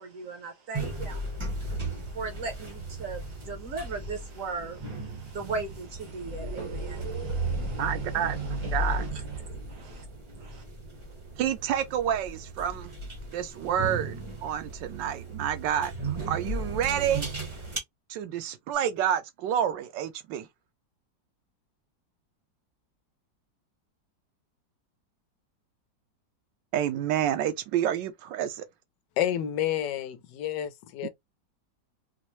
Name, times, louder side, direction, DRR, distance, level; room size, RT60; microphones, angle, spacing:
voice 1, 0.0-1.3 2.0-8.2 9.7-10.0 10.4-10.6, right 4 dB, 60° right, 1.0 m, -38 dB
sound 1, 0.7-17.8, right 2 dB, 30° right, 0.5 m, -35 dB
voice 2, 7.8-8.4 8.7-9.1 11.4-12.9 13.3-17.3 18.1-20.5 26.7-28.7 31.0-31.1, right 10 dB, 80° right, 1.3 m, -29 dB
voice 3, 29.2-31.1, left 11 dB, 75° left, 1.2 m, -29 dB
4.3 x 2.0 x 3.0 m
omnidirectional pair, 2.0 m